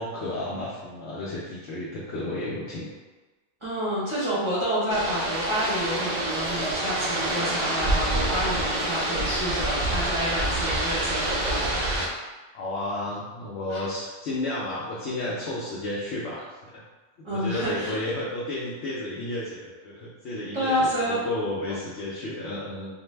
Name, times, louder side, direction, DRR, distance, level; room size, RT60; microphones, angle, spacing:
voice 1, 0.0-2.9 12.5-16.8 17.3-22.9, left 1 dB, 65° left, -7 dB, 0.8 m, -32 dB
voice 2, 3.6-11.8 13.7-13.9 17.2-18.0 20.5-21.2, equal, 30° right, -9 dB, 0.6 m, -28 dB
sound 1, 4.9-12.1, right 1 dB, 75° right, 0.4 m, -27 dB
2.6 x 2.1 x 3.1 m, 1.2 s
omnidirectional pair, 1.4 m